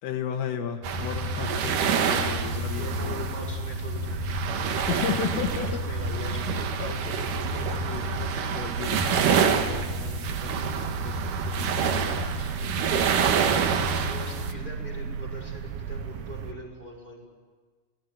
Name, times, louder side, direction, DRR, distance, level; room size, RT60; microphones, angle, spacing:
voice 1, 0.0-3.3 4.9-5.8 6.8-12.1, left 7 dB, 75° left, 3 dB, 4.1 m, -35 dB
sound 1, 0.8-14.5, right 5 dB, 70° right, 2.1 m, -27 dB
voice 2, 2.7-4.9 5.6-6.7 11.7-12.5 12.9-17.3, equal, 10° right, -1 dB, 5.3 m, -42 dB
sound 2, 4.0-16.5, right 7 dB, 85° right, 4.3 m, -36 dB
28.5 x 19.5 x 9.6 m, 1.5 s
omnidirectional pair, 6.0 m